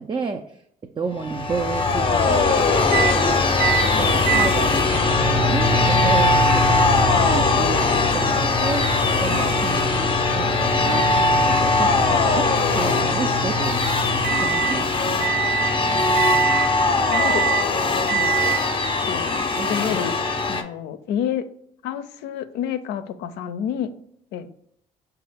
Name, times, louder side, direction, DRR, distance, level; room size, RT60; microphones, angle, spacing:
voice 1, 0.0-13.8 14.4-14.9 19.6-19.7, right 4 dB, 25° right, 5 dB, 0.3 m, -31 dB
sound 1, 1.2-20.6, left 3 dB, 30° left, 0.6 m, -20 dB
sound 2, 2.9-3.2 3.6-3.9 4.3-14.8 15.2-15.8 16.2-16.7 17.1-17.7 18.1-18.6, right 5 dB, 60° right, 0.8 m, -26 dB
voice 2, 17.0-17.5 18.1-18.4 19.0-19.4 19.7-20.2 20.5-21.4 21.8-23.9 24.3-24.5, left 9 dB, 85° left, 10 dB, 0.4 m, -30 dB
5.4 x 2.3 x 3.4 m, 0.70 s
supercardioid pair, 65°, 17 cm